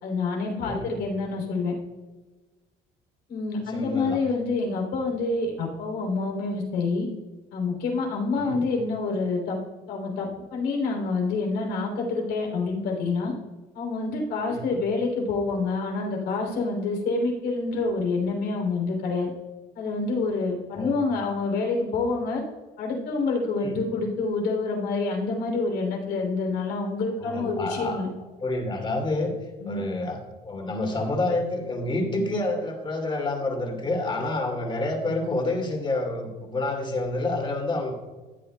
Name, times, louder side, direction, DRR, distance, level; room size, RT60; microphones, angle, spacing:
voice 1, 0.0-1.7 3.3-7.1 7.5-9.6 9.9-13.3 13.7-19.3 19.7-22.4 22.8-28.1 29.6-29.8, left 3 dB, 80° left, 0 dB, 3.2 m, -27 dB
voice 2, 0.6-1.0 3.7-4.2 8.4-8.6 14.5-14.8 20.7-20.9 23.6-23.8 27.2-28.0 28.4-29.3 29.7-37.9, left 2 dB, 30° left, 2 dB, 2.6 m, -28 dB
15.0 x 9.4 x 2.2 m, 1.2 s
cardioid pair, 110°, 17 cm